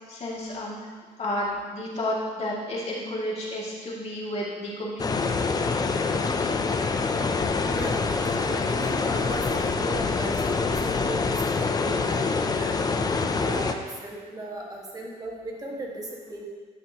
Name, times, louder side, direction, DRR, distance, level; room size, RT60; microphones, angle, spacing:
voice 1, 0.1-0.9 1.2-5.5, left 1 dB, 40° left, -5 dB, 2.4 m, -31 dB
sound 1, 5.0-13.7, left 4 dB, 25° left, 0.5 m, -25 dB
voice 2, 7.0-11.4 11.7-12.7 13.3-16.4, right 2 dB, 20° right, -3 dB, 1.8 m, -37 dB
11.5 x 5.9 x 2.9 m, 1.5 s
cardioid pair, 110°, 17 cm